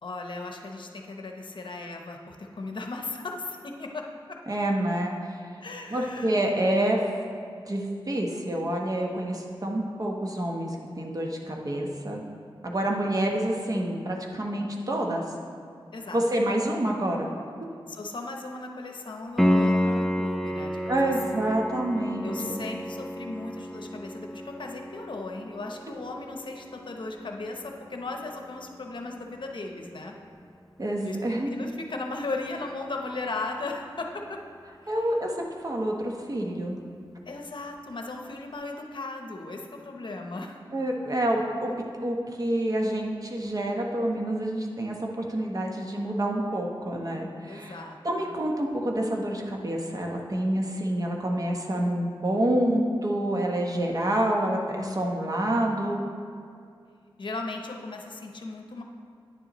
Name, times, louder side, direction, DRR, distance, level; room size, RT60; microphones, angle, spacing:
voice 1, 0.0-4.0 5.6-6.3 15.9-16.2 17.9-21.4 22.2-30.1 31.0-34.4 34.8-35.1 37.3-40.6 47.5-48.4 54.8-55.3 57.2-58.8, left 3 dB, 65° left, 2 dB, 0.7 m, -37 dB
voice 2, 4.5-5.4 5.9-7.0 7.7-12.2 12.6-15.2 16.1-17.3 20.9-22.6 25.9-26.0 30.8-31.5 34.9-36.8 40.7-41.7 42.0-47.8 48.0-56.0, right 1 dB, 45° right, 0 dB, 0.9 m, -28 dB
Piano, 19.4-30.0 33.3-33.4, equal, ahead, 0.4 m, -31 dB
9.6 x 6.8 x 3.0 m, 2.4 s
wide cardioid pair, 70°, 9 cm